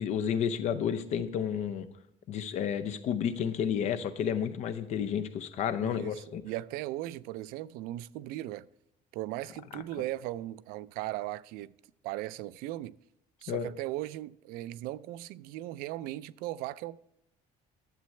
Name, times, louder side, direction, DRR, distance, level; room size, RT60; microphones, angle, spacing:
voice 1, 0.0-1.9 2.3-6.4 13.5-13.7, left 8 dB, 50° left, 0.7 m, -31 dB
voice 2, 5.8-8.7 9.1-11.7 12.0-12.9 13.4-17.0, right 15 dB, 85° right, 0.4 m, -38 dB
11.5 x 7.7 x 3.2 m
cardioid pair, 170°, 15 cm